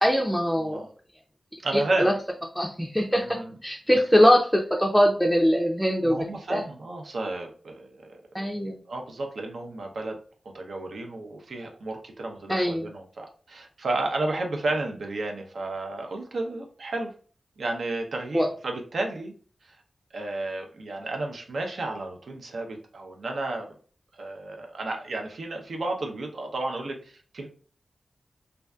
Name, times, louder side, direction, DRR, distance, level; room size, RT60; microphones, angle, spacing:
voice 1, 0.0-0.8 1.7-2.1 2.6-6.2 6.5-6.6 8.3-8.8 12.5-12.8 18.3-18.5, equal, ahead, 0 dB, 0.4 m, -22 dB
voice 2, 1.6-2.1 3.1-3.6 6.0-8.1 8.9-10.2 10.5-17.1 17.6-19.3 19.6-19.7 20.1-23.7 24.2-27.5, right 2 dB, 80° right, 2 dB, 0.5 m, -32 dB
2.5 x 2.3 x 2.2 m, 0.41 s
wide cardioid pair, 65°, 0 cm